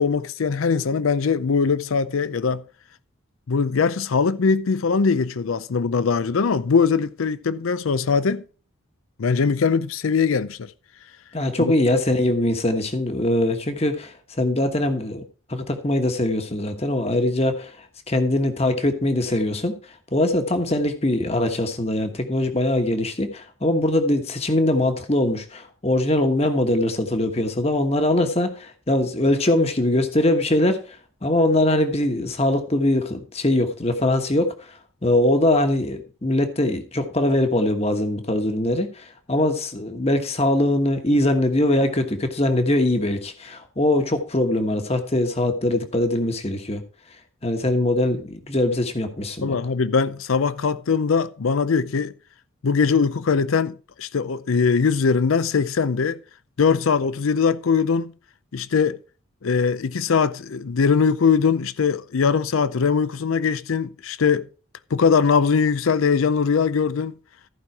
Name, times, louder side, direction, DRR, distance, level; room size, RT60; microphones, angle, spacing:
voice 1, 0.0-2.6 3.5-8.4 9.2-10.7 11.6-11.7 49.4-52.1 52.6-56.2 56.6-58.1 58.5-59.0 59.4-64.5 64.9-67.1, left 5 dB, 80° left, 0.5 m, -21 dB
voice 2, 11.3-15.2 15.5-17.7 18.1-19.7 20.1-34.5 35.0-46.8 47.4-49.6, left 1 dB, 30° left, 1.3 m, -22 dB
14.5 x 5.4 x 4.6 m
head